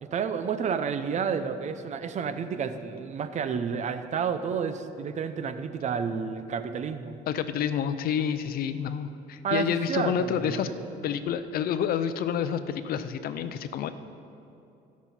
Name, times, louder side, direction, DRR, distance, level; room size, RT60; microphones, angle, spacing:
voice 1, 0.0-7.2 9.4-10.6, right 6 dB, 45° right, 10 dB, 0.6 m, -30 dB
voice 2, 7.3-10.7 11.0-13.9, left 8 dB, 60° left, 12 dB, 0.6 m, -29 dB
16.0 x 6.2 x 4.3 m, 2.9 s
cardioid pair, 110°, 17 cm